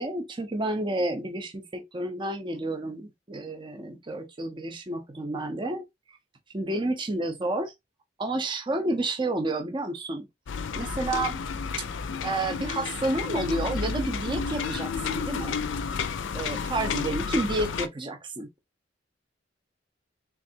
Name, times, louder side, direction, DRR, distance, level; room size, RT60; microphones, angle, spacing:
voice 1, 0.0-5.8 6.5-7.7 8.2-10.3 10.8-11.4 12.2-15.6 16.3-18.5, right 2 dB, 25° right, 0.6 m, -30 dB
sound 1, 10.5-17.9, left 5 dB, 75° left, 0.4 m, -31 dB
3.5 x 3.2 x 2.7 m
head